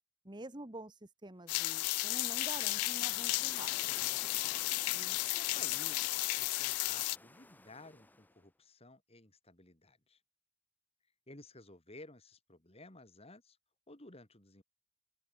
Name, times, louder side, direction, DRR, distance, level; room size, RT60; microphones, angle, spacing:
voice 1, 0.2-4.2, right 2 dB, 20° right, 1.4 m, -48 dB
sound 1, 1.4-8.5, left 1 dB, 10° left, 0.7 m, -57 dB
sound 2, 1.5-7.2, left 21 dB, 85° left, 0.3 m, -34 dB
voice 2, 4.9-10.2 11.3-13.6 13.9-14.6, left 2 dB, 25° left, 2.4 m, -55 dB
open air
head